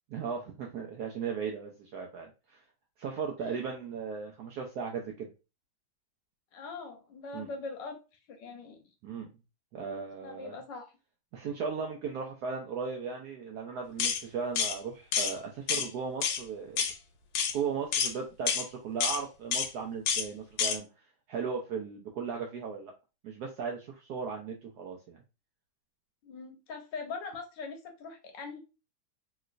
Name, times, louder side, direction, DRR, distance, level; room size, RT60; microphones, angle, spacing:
voice 1, 0.1-2.6 3.0-5.3 7.3-7.5 9.0-9.3 9.7-10.6 11.3-16.8 17.5-20.9 21.3-22.9 23.2-25.2, right 6 dB, 75° right, 1 dB, 0.9 m, -36 dB
voice 2, 6.5-8.0 8.3-8.8 10.2-10.9 26.2-28.6, left 4 dB, 70° left, 5 dB, 1.2 m, -42 dB
sound 1, 14.0-14.2 14.6-14.8 15.1-15.3 15.7-15.9 16.2-16.4 16.8-16.9 17.3-17.5 17.9-18.1 18.5-18.6 19.0-19.2 19.5-19.7 20.1-20.3 20.6-20.8, left 7 dB, 90° left, 1.4 m, -28 dB
3.1 x 3.0 x 2.4 m, 0.30 s
omnidirectional pair, 2.2 m